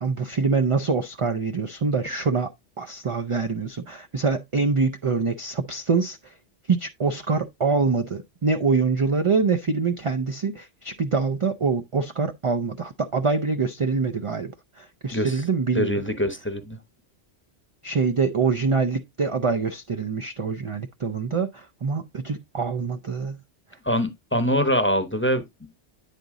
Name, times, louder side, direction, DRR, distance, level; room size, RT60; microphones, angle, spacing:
voice 1, 0.0-2.5 2.8-6.3 6.7-14.5 14.8-16.0 17.8-23.4, right 4 dB, 45° right, 0.4 m, -25 dB
voice 2, 15.1-15.4 15.7-16.8 23.8-25.8, equal, 10° left, 0.7 m, -24 dB
9.3 x 3.9 x 3.6 m
omnidirectional pair, 1.2 m